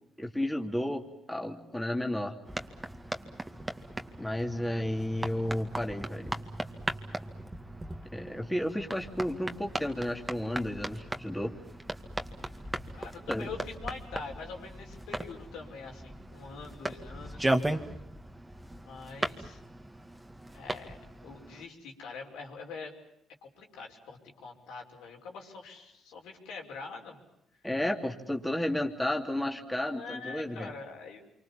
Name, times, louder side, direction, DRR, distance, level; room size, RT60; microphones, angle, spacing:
voice 1, 0.2-1.0 1.3-2.4 4.2-6.3 8.1-11.5 13.3-13.5 27.6-30.7, left 1 dB, 5° left, 2 dB, 3.0 m, -32 dB
sound 1, 2.4-21.7, right 1 dB, 10° right, 2.0 m, -37 dB
voice 2, 13.0-17.5 18.8-19.6 20.5-22.9 23.4-27.2 29.9-31.2, left 4 dB, 85° left, 0 dB, 5.7 m, -44 dB
28.0 x 25.0 x 7.3 m, 0.81 s
cardioid pair, 85°, 0 cm